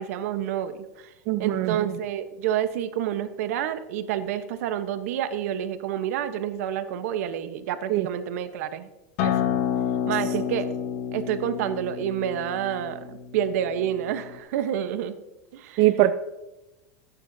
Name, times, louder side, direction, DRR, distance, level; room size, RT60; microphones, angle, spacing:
voice 1, 0.0-1.1 1.4-8.9 9.2-9.5 10.1-10.7 11.1-15.1 15.5-15.8, right 10 dB, 70° right, 10 dB, 1.0 m, -29 dB
voice 2, 1.3-2.0 7.9-8.1 10.2-10.4 15.8-16.1, right 15 dB, 50° right, 11 dB, 0.5 m, -22 dB
Acoustic guitar, 9.2-14.4, left 9 dB, 60° left, 1.3 m, -29 dB
20.5 x 9.6 x 2.7 m, 1.0 s
supercardioid pair, 140°, 8 cm